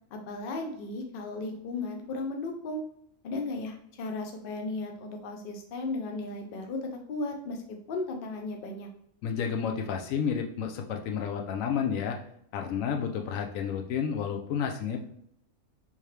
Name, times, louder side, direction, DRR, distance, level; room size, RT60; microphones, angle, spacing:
voice 1, 0.1-2.8 3.2-7.6 7.9-8.9, left 2 dB, 55° left, 3 dB, 0.7 m, -35 dB
voice 2, 9.2-12.2 12.5-15.0, left 7 dB, 85° left, 4 dB, 1.0 m, -31 dB
3.6 x 2.8 x 3.2 m, 0.71 s
omnidirectional pair, 1.4 m